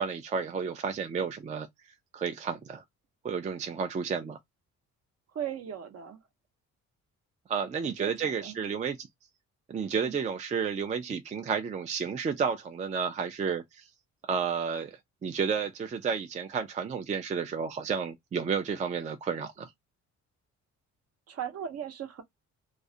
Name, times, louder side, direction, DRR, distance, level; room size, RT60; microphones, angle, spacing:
voice 1, 0.0-1.7 2.1-2.8 3.2-4.4 7.5-9.1 9.7-13.8 14.3-19.7, right 6 dB, 25° right, 0.3 m, -31 dB
voice 2, 5.3-6.2 7.8-8.6 10.0-10.1 21.3-22.2, right 9 dB, 55° right, 0.7 m, -38 dB
2.3 x 2.0 x 2.6 m
cardioid pair, 90°, 30 cm